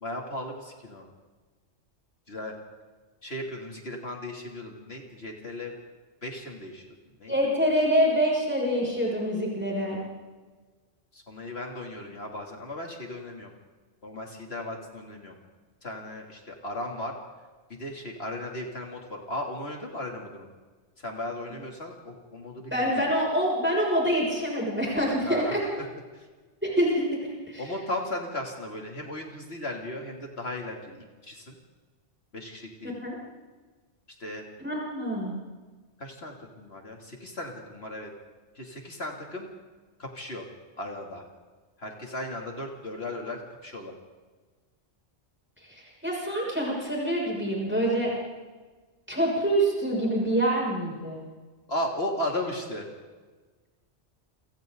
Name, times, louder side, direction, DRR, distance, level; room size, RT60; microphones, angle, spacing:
voice 1, 0.0-1.1 2.3-2.5 3.2-5.7 6.2-6.9 7.2-7.3 9.5-9.6 11.1-13.5 14.0-15.4 15.8-17.2 17.7-20.5 21.0-22.9 25.2-25.9 26.1-26.2 27.6-31.6 32.3-32.9 34.2-34.4 36.0-38.1 38.5-39.5 40.0-40.4 40.8-41.2 41.8-43.9 51.7-52.9, left 1 dB, 60° left, 1 dB, 3.4 m, -36 dB
voice 2, 7.3-10.0 22.7-25.6 26.6-27.2 27.5-27.6 33.0-33.1 34.6-35.3 45.7-48.1 49.1-51.2, equal, 10° right, -3 dB, 6.7 m, -26 dB
30.0 x 27.0 x 4.0 m, 1.3 s
omnidirectional pair, 1.2 m